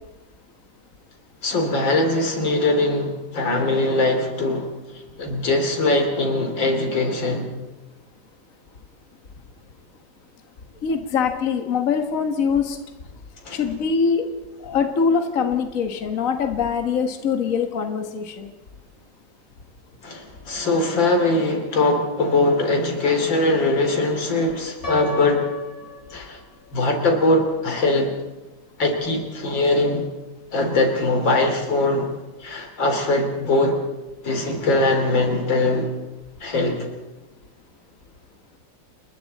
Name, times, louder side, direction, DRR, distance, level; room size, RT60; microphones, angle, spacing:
voice 1, 1.4-4.7 5.2-7.5 13.5-13.6 20.0-25.5 26.1-26.4 26.7-28.2 28.8-30.1 30.5-32.2 32.4-33.8 34.2-35.9 36.4-36.9, left 2 dB, 85° left, 4 dB, 3.8 m, -21 dB
voice 2, 10.8-12.8 13.5-14.3 14.6-18.5, left 6 dB, 45° left, 6 dB, 1.8 m, -23 dB
Piano, 24.8-26.8, left 5 dB, 30° left, 4.1 m, -33 dB
29.5 x 21.0 x 4.2 m, 1.1 s
omnidirectional pair, 2.0 m